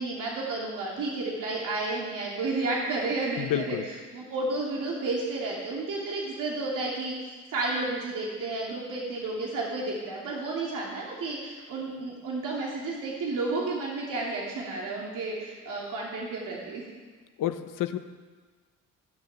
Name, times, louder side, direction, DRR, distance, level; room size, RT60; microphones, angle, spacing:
voice 1, 0.0-16.8, right 3 dB, 75° right, -4 dB, 2.9 m, -32 dB
voice 2, 3.4-3.8 17.4-18.0, left 11 dB, 80° left, 9 dB, 0.9 m, -29 dB
16.0 x 6.6 x 8.7 m, 1.4 s
cardioid pair, 100°, 32 cm